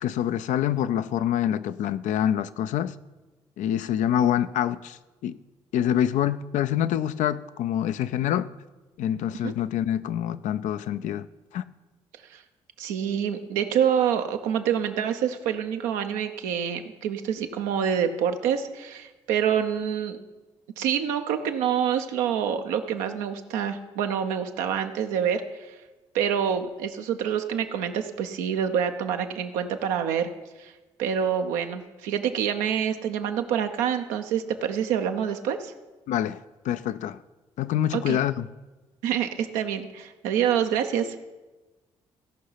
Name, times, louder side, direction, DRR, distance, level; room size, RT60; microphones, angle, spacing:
voice 1, 0.0-2.9 3.6-5.4 5.7-8.5 9.0-11.3 11.5-11.6 36.1-37.2 37.6-38.5, left 10 dB, 70° left, 13 dB, 0.4 m, -26 dB
voice 2, 12.8-20.2 20.8-25.4 26.1-30.3 30.6-30.7 31.0-35.7 38.1-38.2 39.0-41.1, right 8 dB, 80° right, 6 dB, 0.7 m, -26 dB
16.0 x 5.5 x 5.7 m, 1.2 s
hypercardioid pair, 45°, 13 cm